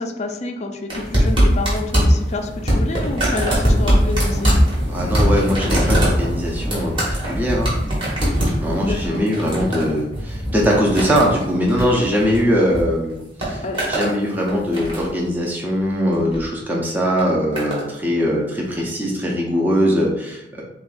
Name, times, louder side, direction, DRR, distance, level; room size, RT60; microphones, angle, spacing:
voice 1, 0.0-4.6 8.8-9.2 13.6-13.8, left 3 dB, 35° left, 4 dB, 0.4 m, -28 dB
sound 1, 0.9-12.8 13.1-14.1 14.5-15.2 16.1-16.4 17.2-17.8 18.7-18.8, equal, 25° right, 1.5 m, -21 dB
voice 2, 4.9-7.7 8.6-20.6, equal, 10° right, -3 dB, 0.6 m, -21 dB
7.0 x 2.3 x 2.5 m, 0.86 s
head